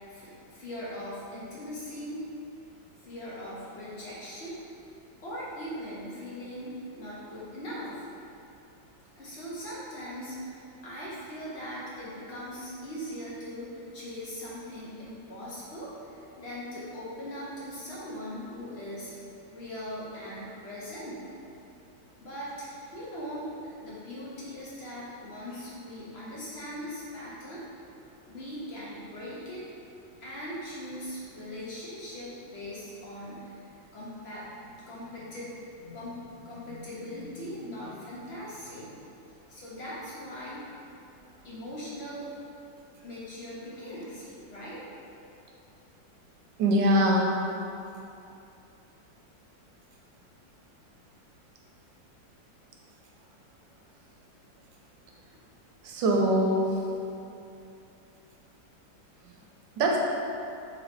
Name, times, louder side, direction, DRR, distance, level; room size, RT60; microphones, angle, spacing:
voice 1, 0.1-2.3 3.0-4.6 5.2-8.1 9.2-19.1 19.5-21.3 22.2-27.6 28.3-29.7 30.2-34.5 34.9-39.0 39.5-40.6 41.4-42.3 43.0-44.8, equal, 70° left, -7 dB, 0.6 m, -40 dB
voice 2, 46.6-47.4 55.8-56.8 59.8-60.0, right 1 dB, 85° right, -1 dB, 1.3 m, -23 dB
3.1 x 3.1 x 4.0 m, 2.7 s
omnidirectional pair, 2.0 m